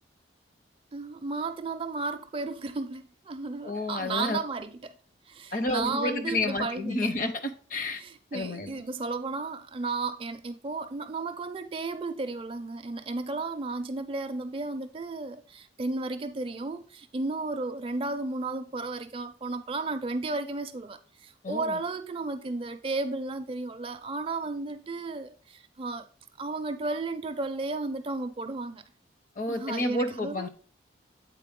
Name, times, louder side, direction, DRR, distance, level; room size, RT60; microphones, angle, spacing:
voice 1, 0.9-4.9 5.3-7.1 8.0-26.1 26.4-28.8 29.5-30.5, right 3 dB, 30° right, 0.4 m, -33 dB
voice 2, 3.6-4.4 5.5-8.0 8.3-8.8 21.4-21.8 29.4-30.5, left 2 dB, 45° left, 0.7 m, -30 dB
8.2 x 4.1 x 3.6 m
head